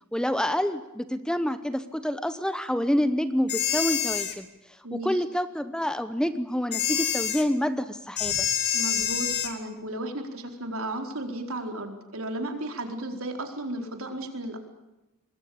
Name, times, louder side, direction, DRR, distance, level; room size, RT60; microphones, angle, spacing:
voice 1, 0.1-4.5 4.9-8.5, equal, 5° left, 11 dB, 0.9 m, -27 dB
sound 1, 3.5-4.3 6.7-7.4 8.2-9.5, left 9 dB, 50° left, 2.5 m, -27 dB
voice 2, 8.7-14.6, right 1 dB, 70° right, 4 dB, 4.4 m, -34 dB
25.5 x 21.0 x 8.7 m, 0.95 s
head